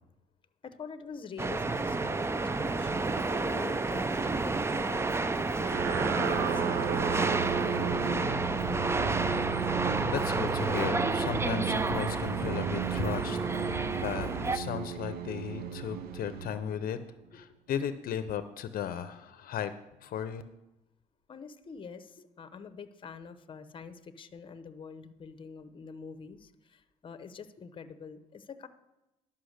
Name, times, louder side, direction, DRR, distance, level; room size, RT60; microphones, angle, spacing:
voice 1, 0.6-7.5 7.8-8.4 17.3-17.4 21.3-28.7, left 5 dB, 30° left, 11 dB, 0.8 m, -46 dB
sound 1, 1.4-14.6, right 3 dB, 15° right, 0.4 m, -30 dB
sound 2, 5.6-17.0, right 7 dB, 70° right, 0.8 m, -34 dB
voice 2, 10.1-17.0 17.3-19.7 20.0-20.4, left 9 dB, 60° left, 11 dB, 0.6 m, -36 dB
11.5 x 5.7 x 6.5 m, 0.97 s
cardioid pair, 110°, 17 cm